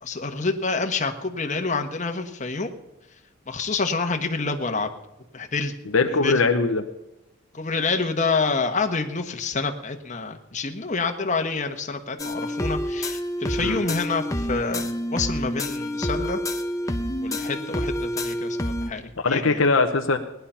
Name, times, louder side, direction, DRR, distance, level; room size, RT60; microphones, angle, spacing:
voice 1, 0.0-2.7 3.5-4.9 5.3-5.7 6.2-6.4 7.5-14.8 15.1-16.4 17.2-19.6, left 4 dB, 35° left, 5 dB, 1.3 m, -27 dB
voice 2, 5.9-6.8 13.6-13.8 19.2-20.2, left 3 dB, 70° left, 5 dB, 1.0 m, -21 dB
sound 1, 12.2-18.9, equal, 15° left, 0.9 m, -28 dB
18.5 x 10.5 x 5.7 m, 0.91 s
head